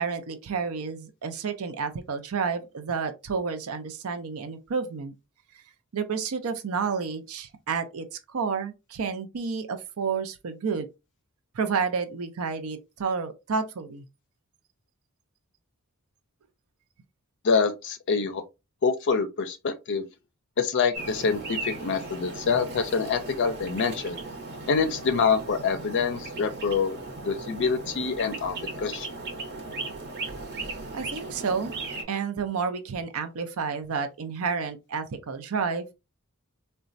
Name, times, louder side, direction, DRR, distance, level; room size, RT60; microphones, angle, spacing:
voice 1, 0.0-5.1 5.9-10.9 11.5-14.0 30.9-31.7 32.1-35.9, right 5 dB, 70° right, 0.5 m, -30 dB
voice 2, 17.4-18.4 18.8-20.1 20.6-24.2 24.7-27.0 27.2-29.1, left 5 dB, 55° left, 0.4 m, -26 dB
sound 1, 20.9-32.0, right 3 dB, 50° right, 0.9 m, -37 dB
4.0 x 2.2 x 2.5 m
head